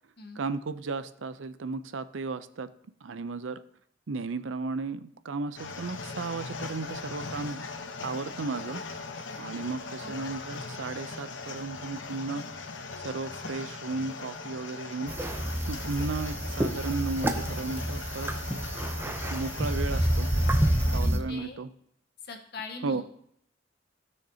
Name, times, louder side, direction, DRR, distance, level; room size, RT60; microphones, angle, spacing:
voice 1, 0.4-2.7 3.0-3.6 4.1-7.6 8.0-8.8 9.4-12.4 13.0-15.1 15.7-18.3 19.1-20.3 20.9-21.7 22.8-23.0, right 3 dB, 90° right, 13 dB, 0.6 m, -34 dB
sound 1, 5.5-21.0, left 4 dB, 80° left, 1.0 m, -40 dB
voice 2, 10.0-10.4 21.0-21.6 22.2-23.0, left 3 dB, 60° left, 3 dB, 1.5 m, -41 dB
sound 2, 15.1-21.2, right 1 dB, 10° right, 0.6 m, -28 dB
16.0 x 6.4 x 2.8 m, 0.69 s
head